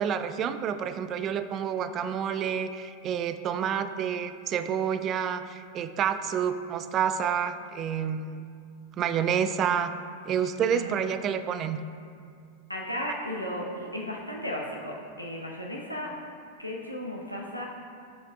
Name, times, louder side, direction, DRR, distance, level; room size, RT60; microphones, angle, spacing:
voice 1, 0.0-8.4 9.0-9.9 10.3-11.8, right 8 dB, 30° right, 11 dB, 0.3 m, -29 dB
voice 2, 10.7-11.0 12.7-16.1 16.6-17.7, left 1 dB, 90° left, -2 dB, 0.7 m, -35 dB
12.5 x 5.6 x 2.3 m, 2.3 s
figure-of-eight pair, 90°, 0 cm